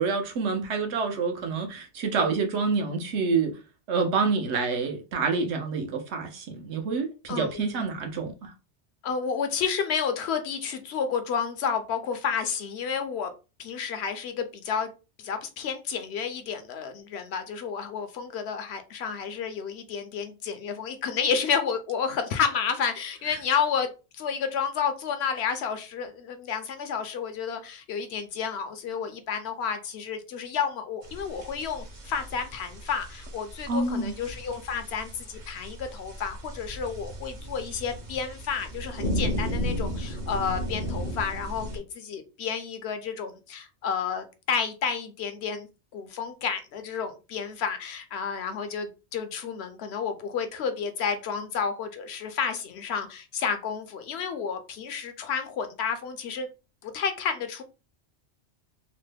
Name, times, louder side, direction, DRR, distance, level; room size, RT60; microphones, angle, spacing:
voice 1, 0.0-3.5 3.9-8.5 23.3-23.4 33.7-34.1, right 4 dB, 75° right, 1.0 m, -27 dB
voice 2, 7.3-7.8 9.0-13.3 13.6-14.9 15.2-45.7 45.9-56.5 56.8-57.6, left 6 dB, 70° left, 0.8 m, -31 dB
sound 1, 31.0-41.8, equal, 45° right, 0.8 m, -35 dB
3.0 x 2.1 x 3.2 m
omnidirectional pair, 1.2 m